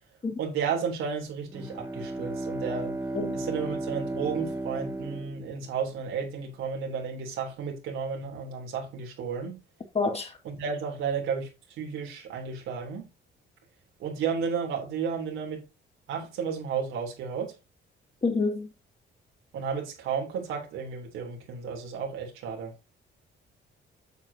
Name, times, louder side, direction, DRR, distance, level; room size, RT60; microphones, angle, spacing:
voice 1, 0.4-2.9 3.3-9.6 10.4-11.5 11.8-13.1 14.0-15.6 16.1-17.5 19.5-22.7, right 6 dB, 90° right, 3.5 m, -33 dB
Bowed string instrument, 1.5-6.1, right 2 dB, 10° right, 2.1 m, -34 dB
voice 2, 9.9-10.3 18.2-18.7, left 3 dB, 30° left, 3.4 m, -27 dB
9.1 x 7.6 x 2.9 m
cardioid pair, 90°, 20 cm